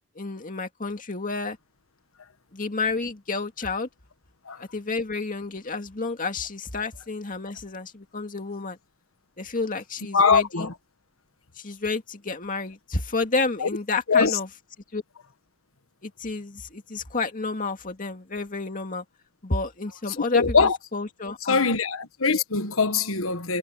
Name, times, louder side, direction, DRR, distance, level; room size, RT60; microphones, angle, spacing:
voice 1, 0.2-1.6 2.5-3.9 4.6-8.8 9.4-10.7 11.6-14.6 14.9-15.0 16.0-19.0 19.4-21.7, left 3 dB, 40° left, 2.2 m, -30 dB
voice 2, 10.1-10.7 13.6-13.7 14.1-14.4 20.3-20.8 21.5-23.6, left 5 dB, 90° left, 1.5 m, -22 dB
head